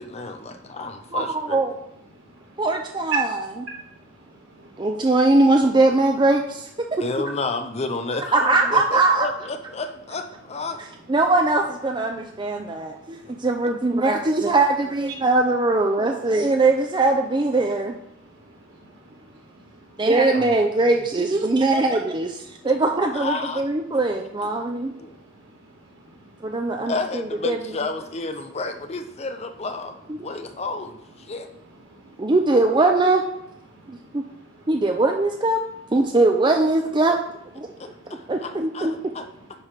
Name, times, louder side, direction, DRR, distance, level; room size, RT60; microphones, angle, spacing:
voice 1, 0.0-1.6 7.0-10.8 20.3-21.0 22.6-22.7 23.1-23.6 25.0-25.2 26.9-29.9 30.2-31.5 37.8-39.3, left 3 dB, 30° left, 7 dB, 0.6 m, -31 dB
voice 2, 1.1-1.7 2.6-3.7 4.8-7.0 8.3-9.3 11.1-17.9 20.0-24.9 26.4-27.6 32.2-33.2 33.9-34.2 34.7-35.6 35.9-37.2 37.6-37.7 38.3-38.9, right 2 dB, 20° right, 3 dB, 0.5 m, -21 dB
voice 3, 4.3-4.9 13.1-13.3 18.2-19.8 24.6-24.8 25.6-25.7 26.0-26.8 30.2-30.3 31.9-32.3 33.7-34.7 37.7-38.2, right 6 dB, 75° right, -4 dB, 3.3 m, -38 dB
9.8 x 3.4 x 5.7 m, 0.81 s
head